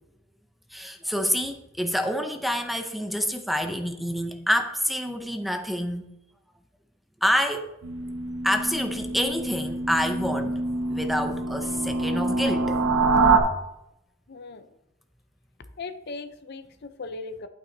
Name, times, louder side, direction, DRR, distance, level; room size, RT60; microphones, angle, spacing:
voice 1, 0.7-6.1 7.2-7.8 8.4-10.5 10.9-12.8, equal, ahead, 6 dB, 0.5 m, -27 dB
sound 1, 7.8-13.4, right 3 dB, 85° right, 1.1 m, -25 dB
voice 2, 14.3-14.7 15.8-17.5, left 3 dB, 55° left, 10 dB, 0.6 m, -38 dB
11.5 x 8.8 x 2.7 m, 0.85 s
head